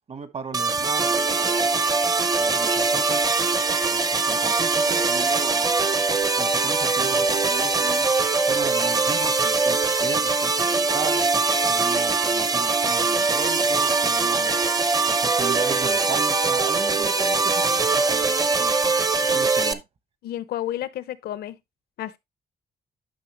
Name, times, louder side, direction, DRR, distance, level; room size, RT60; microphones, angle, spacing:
voice 1, 0.1-1.8 2.3-3.3 3.9-5.8 6.3-8.1 8.5-11.2 11.7-14.5 15.1-18.7 19.3-19.8, right 5 dB, 40° right, 1.2 m, -36 dB
sound 1, 0.5-19.7, right 4 dB, 25° right, 0.7 m, -22 dB
voice 2, 20.2-21.6 22.0-22.2, left 12 dB, 85° left, 0.8 m, -31 dB
10.5 x 5.8 x 3.0 m
cardioid pair, 130°, 16 cm